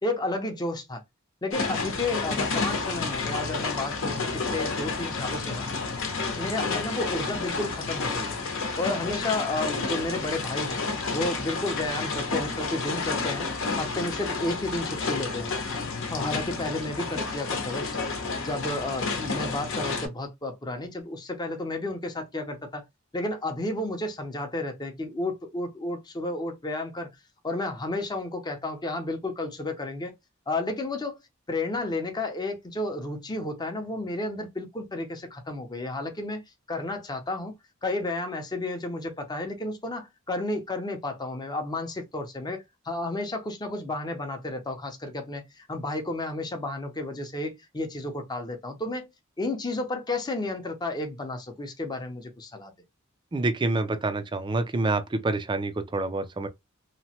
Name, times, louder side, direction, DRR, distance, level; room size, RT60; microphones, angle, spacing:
voice 1, 0.0-1.0 1.4-5.7 6.4-8.4 8.8-10.8 11.1-15.5 16.1-18.0 18.4-22.8 23.1-27.1 27.4-30.1 30.5-31.2 31.5-36.4 36.7-37.5 37.8-49.1 49.4-52.7, left 2 dB, 20° left, 0.6 m, -32 dB
sound 1, 1.5-20.1, left 4 dB, 70° left, 0.8 m, -30 dB
voice 2, 53.3-56.5, right 2 dB, 25° right, 0.4 m, -27 dB
2.9 x 2.1 x 2.8 m
head